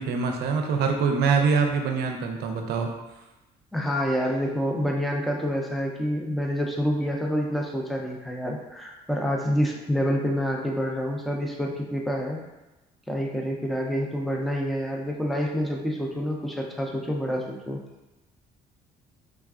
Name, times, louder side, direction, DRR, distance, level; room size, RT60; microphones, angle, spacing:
voice 1, 0.0-2.9, right 5 dB, 75° right, 4 dB, 0.5 m, -24 dB
voice 2, 3.7-12.4 13.1-17.8, equal, ahead, -1 dB, 0.4 m, -27 dB
3.2 x 2.3 x 2.4 m, 1.0 s
cardioid pair, 110°, 17 cm